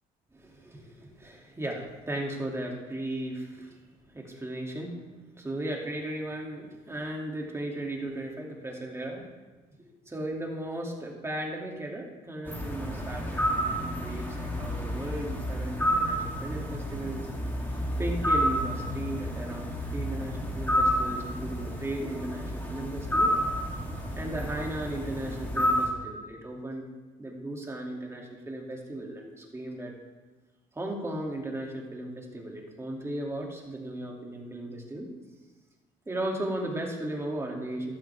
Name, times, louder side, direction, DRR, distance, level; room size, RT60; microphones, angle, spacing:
voice 1, 0.3-3.8 4.1-5.0 5.4-9.3 9.8-17.3 18.0-23.3 24.1-26.8 27.2-29.9 30.7-35.1 36.1-38.0, right 1 dB, 15° right, 0 dB, 2.6 m, -36 dB
sound 1, 12.4-25.9, equal, 10° left, 2.9 m, -30 dB
14.0 x 12.0 x 3.5 m, 1.3 s
cardioid pair, 110°, 17 cm